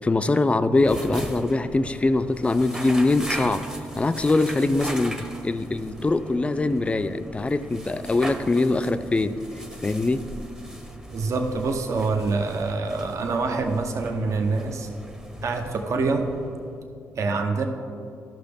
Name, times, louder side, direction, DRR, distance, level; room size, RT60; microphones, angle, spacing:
voice 1, 0.0-3.6 4.0-9.4 9.8-10.2, left 2 dB, 20° left, 11 dB, 0.4 m, -23 dB
sound 1, 0.7-16.8, right 1 dB, 10° right, 0.7 m, -38 dB
voice 2, 11.1-14.9 15.4-16.4 17.2-17.7, right 3 dB, 55° right, 4 dB, 0.7 m, -25 dB
13.0 x 6.0 x 3.4 m, 2.5 s
cardioid pair, 90°, 6 cm